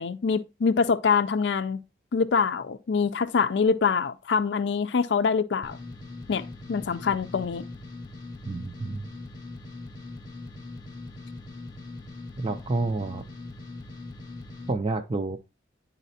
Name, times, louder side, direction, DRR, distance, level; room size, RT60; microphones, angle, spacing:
voice 1, 0.0-1.8 2.1-5.8 6.3-7.6, left 5 dB, 75° left, 0.4 m, -25 dB
sound 1, 5.6-14.7, left 2 dB, 25° left, 0.8 m, -41 dB
voice 2, 8.5-9.1 12.4-13.2 14.7-15.4, right 3 dB, 30° right, 0.4 m, -29 dB
9.9 x 4.1 x 2.7 m
head